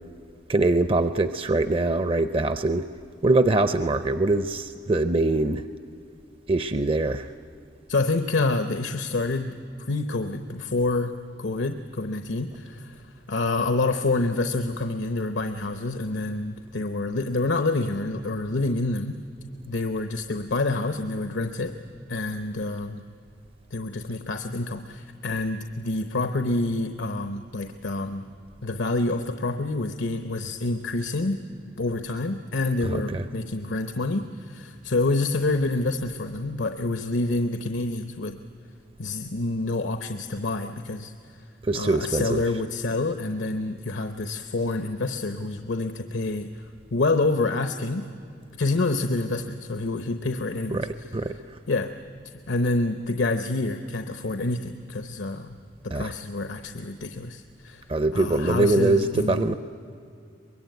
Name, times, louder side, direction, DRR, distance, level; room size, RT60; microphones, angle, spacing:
voice 1, 0.5-2.9 3.2-5.7 6.5-7.3 32.8-33.3 41.6-42.4 50.7-51.6 55.9-56.1 57.9-59.5, right 2 dB, 30° right, 11 dB, 0.5 m, -23 dB
voice 2, 7.9-11.1 11.4-19.2 19.7-21.7 22.1-23.0 23.7-28.3 28.6-31.4 31.8-38.4 39.0-41.5 41.7-48.1 48.5-50.9 51.7-51.9 52.5-55.6 55.8-57.9 58.1-59.5, left 2 dB, 75° left, 8 dB, 0.9 m, -27 dB
24.0 x 21.5 x 9.3 m, 2.4 s
head